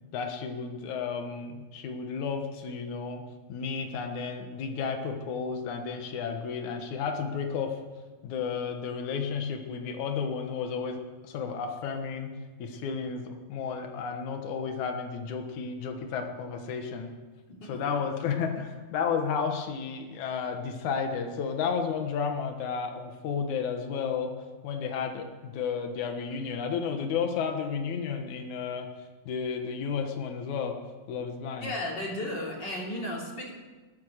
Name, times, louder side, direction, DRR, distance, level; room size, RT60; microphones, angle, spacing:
voice 1, 0.1-3.2 3.5-7.8 8.2-12.3 12.6-17.1 17.7-24.3 24.6-28.9 29.3-30.8 31.1-31.7, left 6 dB, 85° left, 5 dB, 2.8 m, -32 dB
voice 2, 31.6-33.5, left 1 dB, 35° left, -2 dB, 3.6 m, -34 dB
20.0 x 9.9 x 6.5 m, 1.3 s
omnidirectional pair, 3.3 m